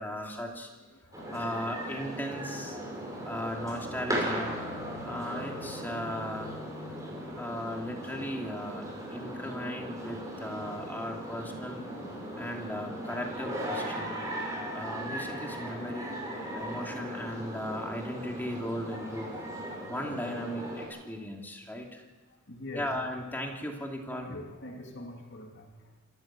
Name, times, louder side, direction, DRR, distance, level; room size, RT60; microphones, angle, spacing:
voice 1, 0.0-0.7 1.3-2.8 3.2-4.5 5.0-6.6 7.3-8.8 9.1-11.8 12.4-14.1 14.7-16.1 16.5-19.3 19.6-22.0 22.7-24.3, equal, 10° left, 1 dB, 2.7 m, -37 dB
voice 2, 0.8-1.5 2.8-3.4 9.1-9.3 16.3-16.7 21.6-21.8 22.3-23.0 24.1-26.0, left 1 dB, 55° left, 2 dB, 2.6 m, -46 dB
sound 1, 1.1-20.8, right 1 dB, 15° right, 5.7 m, -38 dB
26.5 x 13.5 x 7.5 m, 1.2 s
head